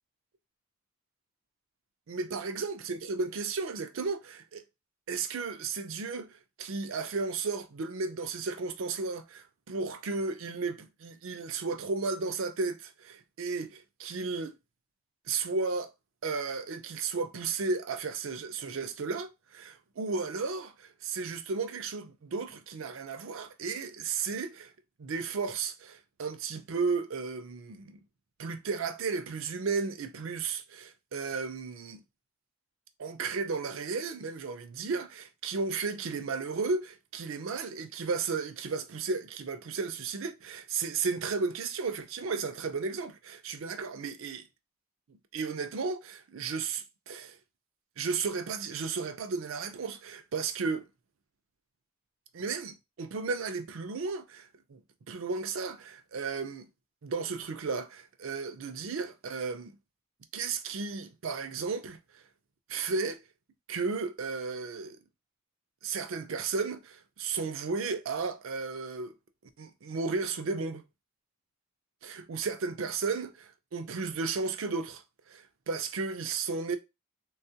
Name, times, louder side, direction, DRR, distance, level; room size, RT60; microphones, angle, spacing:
voice 1, 2.1-4.6 5.1-14.6 15.3-15.9 16.2-24.7 25.0-28.0 28.4-32.0 33.0-44.4 45.1-47.4 48.0-50.9 52.3-54.8 55.1-56.6 57.0-59.7 60.3-62.2 62.7-63.2 63.7-65.0 65.8-69.1 69.6-70.8 72.0-76.8, right 4 dB, 70° right, 0.5 m, -34 dB
3.6 x 2.3 x 2.7 m
head